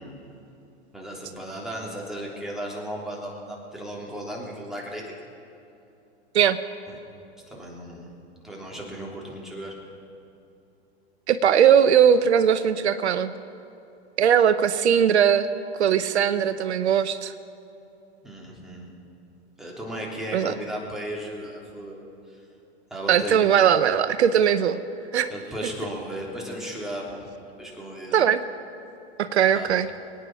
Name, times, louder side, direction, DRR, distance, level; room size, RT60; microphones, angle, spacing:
voice 1, 0.9-5.1 6.9-7.0 7.5-8.1 8.4-9.8 18.2-18.9 19.6-22.0 22.9-23.6 25.3-27.2 27.6-28.2 29.5-29.7, right 1 dB, ahead, -3 dB, 3.3 m, -35 dB
voice 2, 11.3-13.3 14.2-15.5 15.8-17.3 20.3-20.5 23.1-24.8 25.1-25.3 28.1-28.4 29.2-29.9, right 8 dB, 80° right, 12 dB, 0.7 m, -19 dB
23.5 x 9.3 x 6.3 m, 2.7 s
hypercardioid pair, 110°, 33 cm